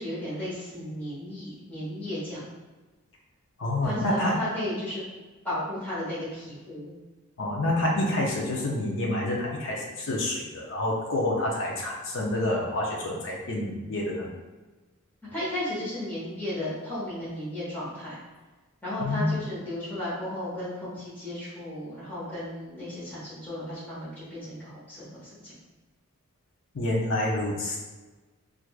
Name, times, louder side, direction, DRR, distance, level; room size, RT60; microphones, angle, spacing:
voice 1, 0.0-2.4 3.8-5.0 5.4-6.9 15.3-18.1 18.8-25.5, left 1 dB, 10° left, -10 dB, 1.1 m, -34 dB
voice 2, 3.6-4.5 7.4-14.3 19.0-19.3 26.7-27.8, left 1 dB, 60° left, -3 dB, 0.6 m, -28 dB
4.5 x 2.5 x 2.4 m, 1.2 s
head